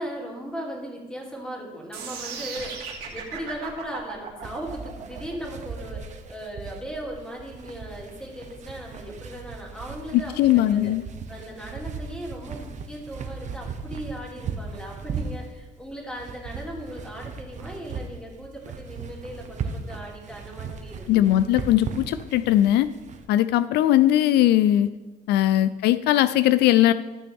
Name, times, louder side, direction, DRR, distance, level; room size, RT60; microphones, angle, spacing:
voice 1, 0.0-10.9 11.3-21.4, equal, 5° left, -2 dB, 2.8 m, -38 dB
sound 1, 1.9-8.0, right 6 dB, 80° right, 2.2 m, -37 dB
sound 2, 4.4-23.2, right 5 dB, 45° right, 1.0 m, -37 dB
voice 2, 10.4-11.0 21.1-22.9 23.3-24.9 25.3-26.9, left 13 dB, 75° left, 14 dB, 0.4 m, -19 dB
14.0 x 6.2 x 3.5 m, 1.2 s
cardioid pair, 110°, 17 cm